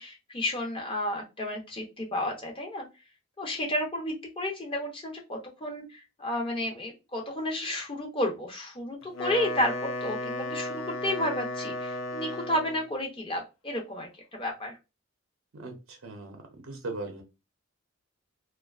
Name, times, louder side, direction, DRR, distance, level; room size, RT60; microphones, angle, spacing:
voice 1, 0.0-2.9 3.4-14.8, left 1 dB, 25° left, 0 dB, 0.5 m, -32 dB
Wind instrument woodwind instrument, 9.0-12.9, left 1 dB, 70° left, 0.5 m, -34 dB
voice 2, 15.5-16.4 16.6-17.2, right 2 dB, 75° right, 3 dB, 0.6 m, -38 dB
2.4 x 2.2 x 2.3 m, 0.26 s
head